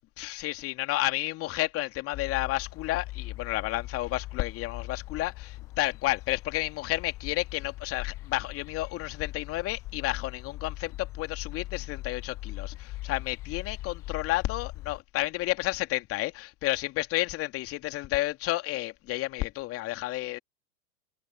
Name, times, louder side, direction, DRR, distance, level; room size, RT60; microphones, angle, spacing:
voice 1, 0.2-20.4, left 17 dB, 30° left, 2.8 m, -31 dB
sound 1, 2.1-15.0, left 17 dB, 5° left, 0.3 m, -40 dB
open air
figure-of-eight pair, 105°, 46 cm